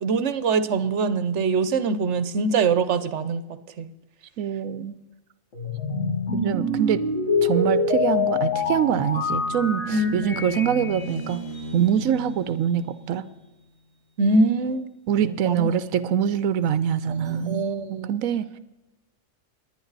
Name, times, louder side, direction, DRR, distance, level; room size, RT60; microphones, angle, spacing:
voice 1, 0.0-3.4 3.8-3.9 9.9-10.3 14.2-14.9 15.2-15.7 16.0-16.1 17.2-18.1, right 3 dB, 60° right, 13 dB, 1.2 m, -23 dB
voice 2, 4.4-4.9 6.3-7.0 7.4-11.4 11.7-13.2 15.1-17.6 18.1-18.6, right 9 dB, 85° right, 14 dB, 1.1 m, -24 dB
sound 1, 5.5-12.8, left 3 dB, 65° left, 2.6 m, -26 dB
29.0 x 10.0 x 4.0 m, 1.1 s
omnidirectional pair, 1.4 m